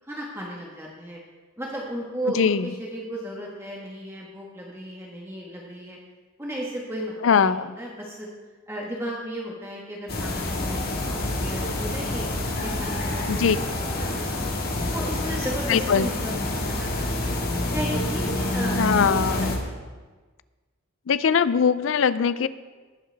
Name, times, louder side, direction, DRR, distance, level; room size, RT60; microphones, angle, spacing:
voice 1, 0.0-1.2 1.6-6.0 6.4-8.3 8.7-12.3 12.6-14.5 14.9-17.3 17.7-19.8, equal, 15° right, -3 dB, 1.3 m, -35 dB
voice 2, 2.3-2.7 7.2-7.7 13.3-13.6 15.7-16.1 18.8-19.5 21.1-22.5, left 6 dB, 70° left, 15 dB, 0.4 m, -21 dB
sound 1, 10.1-19.6, left 1 dB, 50° left, 1.8 m, -27 dB
19.0 x 7.8 x 3.4 m, 1.3 s
head